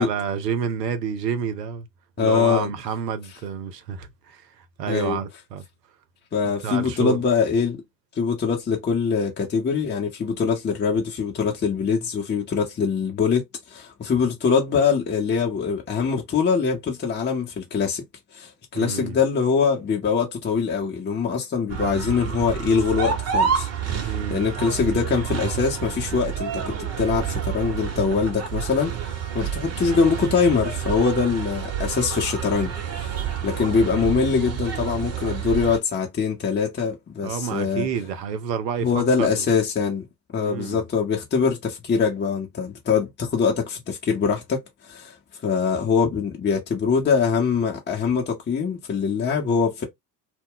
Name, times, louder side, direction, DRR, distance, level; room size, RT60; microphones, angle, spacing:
voice 1, 0.0-1.9 2.2-5.7 6.6-7.2 18.7-19.2 24.0-24.4 37.2-39.5 40.4-40.8, right 7 dB, 80° right, 0.7 m, -29 dB
voice 2, 2.2-2.7 4.9-5.2 6.3-7.8 8.2-18.0 18.3-37.9 38.8-40.1 40.3-45.2 45.4-49.9, left 5 dB, 20° left, 0.9 m, -23 dB
sound 1, 21.7-35.8, right 8 dB, 30° right, 0.9 m, -29 dB
2.3 x 2.1 x 3.7 m
hypercardioid pair, 70°, 48 cm